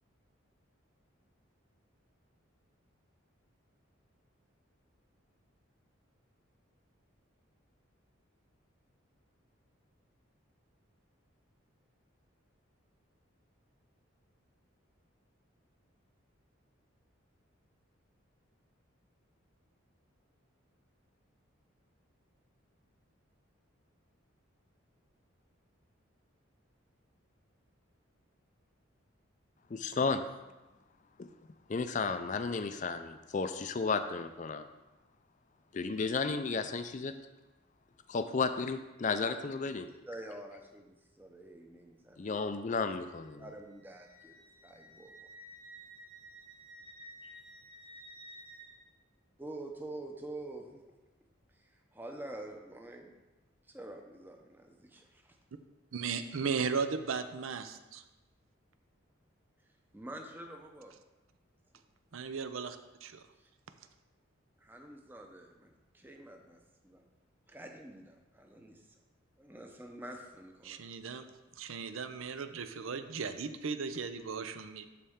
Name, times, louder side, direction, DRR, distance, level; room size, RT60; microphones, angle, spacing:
voice 1, 29.7-30.2 31.2-31.3 31.7-34.6 35.7-37.1 38.1-39.9 42.2-43.4, left 4 dB, 35° left, 9 dB, 0.4 m, -33 dB
voice 2, 40.1-42.5 43.4-45.1 47.2-47.3 49.4-50.8 51.5-53.1 53.7-55.4 59.9-60.9 63.4-63.5 64.6-67.0 67.5-69.0 69.4-70.8, right 1 dB, 10° right, 3 dB, 0.7 m, -47 dB
Wind instrument woodwind instrument, 43.0-48.8, right 1 dB, 50° right, 2.2 m, -53 dB
voice 3, 55.9-58.0 62.1-63.2 70.6-71.3 71.6-74.8, right 5 dB, 80° right, 10 dB, 0.6 m, -36 dB
12.0 x 4.3 x 3.6 m, 1.1 s
head